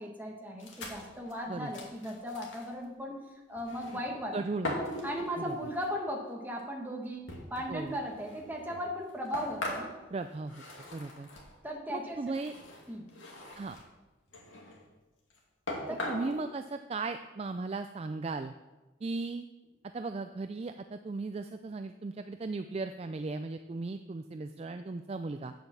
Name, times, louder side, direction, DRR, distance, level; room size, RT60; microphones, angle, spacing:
voice 1, 0.0-3.2 3.5-4.3 5.0-7.2 7.5-9.9 11.6-12.2 12.9-13.1 15.9-16.1, equal, 10° right, 0 dB, 1.5 m, -37 dB
sound 1, 0.6-2.7 3.5-4.2 4.6-5.9 6.6-6.7 7.3-11.6 12.2-13.9 14.3-14.9 15.3-15.4 15.7-16.3, left 1 dB, 80° left, 2.3 m, -41 dB
voice 2, 4.3-4.8 5.4-5.6 7.7-8.0 10.1-10.6 10.9-11.3 11.9-12.5 13.5-13.8 15.9-18.5 19.0-19.5 19.9-25.5, right 3 dB, 30° right, 8 dB, 0.3 m, -37 dB
8.9 x 7.4 x 7.1 m, 1.1 s
head